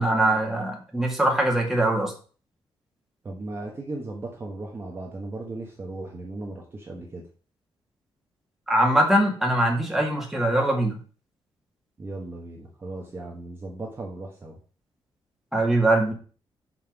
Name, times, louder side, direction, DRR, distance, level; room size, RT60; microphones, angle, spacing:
voice 1, 0.0-2.1 8.7-10.9 15.5-16.1, right 1 dB, 5° right, -1 dB, 1.8 m, -22 dB
voice 2, 3.2-7.3 12.0-14.6, right 2 dB, 25° right, -1 dB, 1.4 m, -36 dB
5.9 x 5.6 x 6.0 m, 0.39 s
wide cardioid pair, 175°, 9 cm